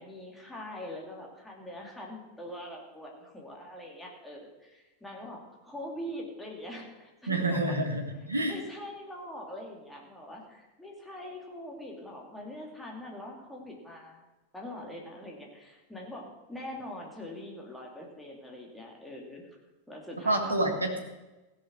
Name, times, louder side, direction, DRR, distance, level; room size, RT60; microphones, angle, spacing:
voice 1, 0.0-7.8 8.5-14.2 14.5-19.5 19.9-20.6, left 1 dB, 5° left, -1 dB, 2.7 m, -43 dB
voice 2, 7.3-8.6 20.3-21.0, right 2 dB, 80° right, 4 dB, 1.8 m, -28 dB
16.0 x 6.7 x 6.3 m, 1.1 s
figure-of-eight pair, 90°, 0 cm